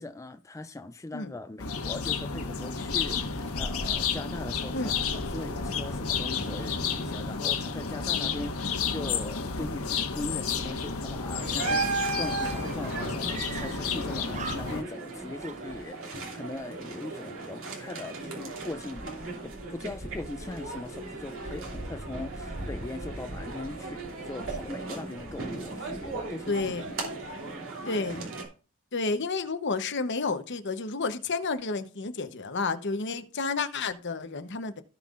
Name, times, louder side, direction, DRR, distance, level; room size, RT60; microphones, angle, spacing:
voice 1, 0.0-26.6, left 2 dB, 15° left, 0.4 m, -40 dB
sound 1, 1.6-14.8, left 5 dB, 85° left, 1.4 m, -31 dB
sound 2, 11.4-28.5, right 3 dB, 60° right, 3.1 m, -36 dB
Screaming, 13.2-14.0 14.3-15.1 15.4-16.3, right 6 dB, 30° right, 0.6 m, -42 dB
voice 2, 26.5-26.9 27.9-28.2 28.9-34.8, left 4 dB, 55° left, 0.9 m, -31 dB
16.5 x 5.5 x 2.5 m
head